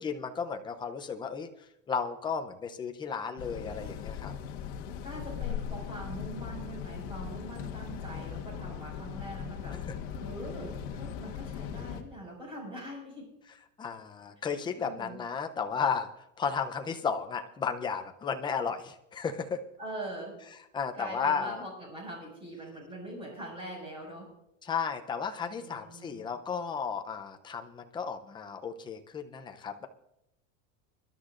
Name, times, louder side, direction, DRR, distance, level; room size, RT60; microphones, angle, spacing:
voice 1, 0.0-1.5 1.9-4.3 9.7-9.9 13.8-19.6 20.7-21.6 24.6-29.9, left 6 dB, 10° left, 5 dB, 0.6 m, -34 dB
sound 1, 3.4-12.0, left 8 dB, 50° left, 1.4 m, -39 dB
voice 2, 5.0-9.7 10.1-13.2 14.4-14.5 14.8-15.2 19.8-20.3 21.0-24.3 25.5-26.2, right 1 dB, 15° right, -1 dB, 5.7 m, -42 dB
25.0 x 11.5 x 2.5 m, 0.84 s
supercardioid pair, 160°, 38 cm